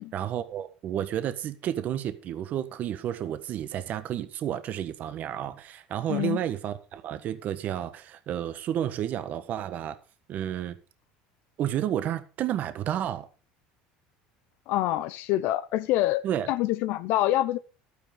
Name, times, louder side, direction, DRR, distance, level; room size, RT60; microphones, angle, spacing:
voice 1, 0.1-10.0 10.3-10.8 11.6-13.3 16.2-16.5, right 10 dB, 45° right, 1.4 m, -31 dB
voice 2, 14.7-16.2 16.5-17.6, left 14 dB, 65° left, 0.9 m, -26 dB
12.0 x 9.9 x 5.2 m
supercardioid pair, 125°, 4 cm